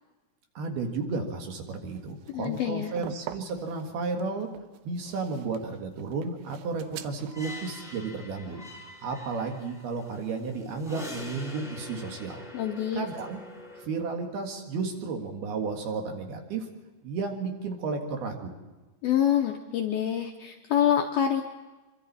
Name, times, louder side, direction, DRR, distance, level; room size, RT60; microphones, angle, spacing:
voice 1, 0.5-4.5 4.8-8.6 9.0-12.5 13.0-13.4 13.8-16.7 17.0-18.5, right 4 dB, 60° right, 3 dB, 3.2 m, -33 dB
sound 1, 1.9-7.3, right 12 dB, 80° right, 2.9 m, -44 dB
voice 2, 2.3-2.9 12.5-13.1 19.0-21.4, left 10 dB, 85° left, 3 dB, 2.1 m, -26 dB
sound 2, 6.6-13.9, left 1 dB, ahead, 0.6 m, -44 dB
25.5 x 24.5 x 4.2 m, 1.2 s
omnidirectional pair, 5.7 m